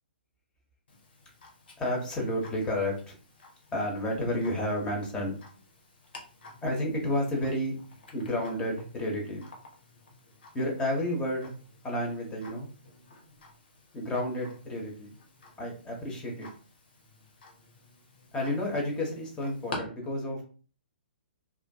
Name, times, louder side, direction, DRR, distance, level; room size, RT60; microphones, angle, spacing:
Tick-tock, 0.9-19.8, left 3 dB, 70° left, 0.9 m, -50 dB
voice 1, 1.8-3.2 3.7-5.4 6.6-7.8 8.1-9.4 10.5-11.5 11.8-12.7 13.9-15.1 15.6-16.5 18.3-20.4, left 1 dB, 15° left, -1 dB, 0.8 m, -31 dB
2.4 x 2.3 x 2.2 m, 0.39 s
figure-of-eight pair, 125°, 6 cm